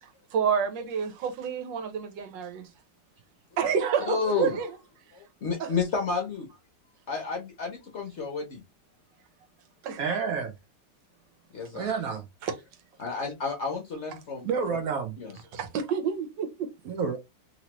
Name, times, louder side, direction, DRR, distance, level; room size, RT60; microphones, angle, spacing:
voice 1, 0.0-2.7 3.6-4.8 5.6-5.7 9.8-10.0 12.4-12.5 15.5-16.7, right 7 dB, 85° right, 1.4 m, -29 dB
voice 2, 4.1-4.6 5.1-6.5 7.1-8.6 11.5-11.9 13.0-14.5 15.2-15.3, left 5 dB, 55° left, 0.8 m, -31 dB
voice 3, 10.0-10.5 11.7-12.3 14.4-15.2 16.8-17.2, right 5 dB, 70° right, 0.9 m, -29 dB
3.0 x 2.9 x 2.9 m
omnidirectional pair, 1.9 m